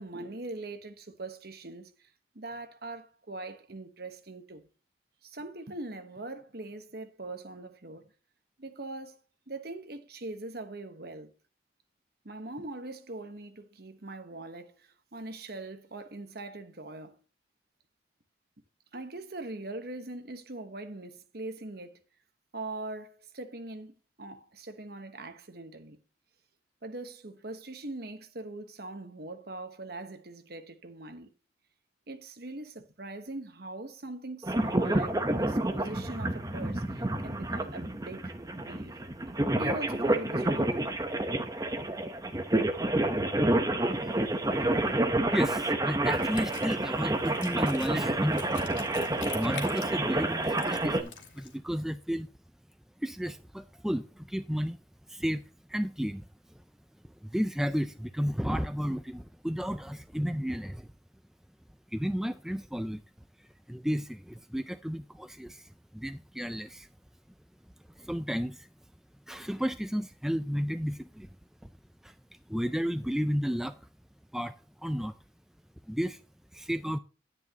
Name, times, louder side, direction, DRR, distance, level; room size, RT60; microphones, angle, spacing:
voice 1, 0.0-1.9 2.3-4.7 5.2-8.1 8.6-9.2 9.5-11.3 12.2-17.2 18.9-22.0 22.5-26.0 26.8-31.3 32.1-39.0 39.5-40.8, right 2 dB, 55° right, 1.2 m, -42 dB
sound 1, 34.4-51.0, right 1 dB, 20° right, 0.9 m, -29 dB
voice 2, 45.3-48.8 49.3-52.3 53.0-54.8 55.1-55.4 55.7-56.3 57.2-60.9 61.9-63.0 63.7-66.9 68.0-68.7 69.3-71.3 72.0-72.1 72.5-73.8 74.3-75.1 75.9-76.2 76.5-77.0, equal, ahead, 0.4 m, -32 dB
Wind instrument woodwind instrument, 46.1-51.6, left 6 dB, 85° left, 2.4 m, -47 dB
10.5 x 9.6 x 2.9 m
head